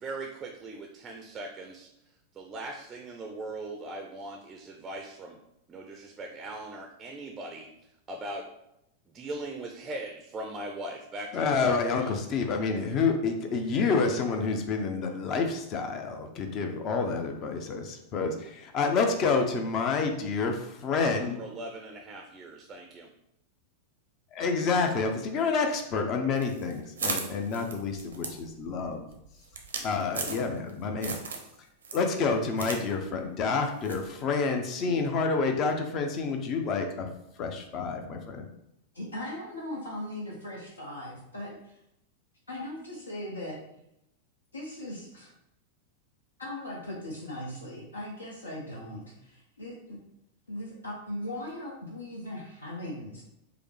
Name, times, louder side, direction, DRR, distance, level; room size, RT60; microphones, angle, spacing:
voice 1, 0.0-5.4 5.7-7.7 8.1-8.5 9.1-12.1 21.4-23.1, right 2 dB, 25° right, 3 dB, 0.5 m, -40 dB
voice 2, 11.3-21.4 24.3-29.1 29.8-31.2 31.9-37.1 37.4-38.5, left 4 dB, 35° left, 5 dB, 0.6 m, -28 dB
sound 1, 26.4-30.7 31.0-31.5 31.8-32.8 33.1-33.2 33.9-34.1, right 4 dB, 70° right, 0.6 m, -36 dB
voice 3, 38.9-41.8 42.5-43.6 44.5-45.3 46.4-50.0 50.5-53.2, left 1 dB, 75° left, -3 dB, 0.8 m, -39 dB
4.8 x 2.0 x 3.2 m, 0.81 s
figure-of-eight pair, 90°, 0 cm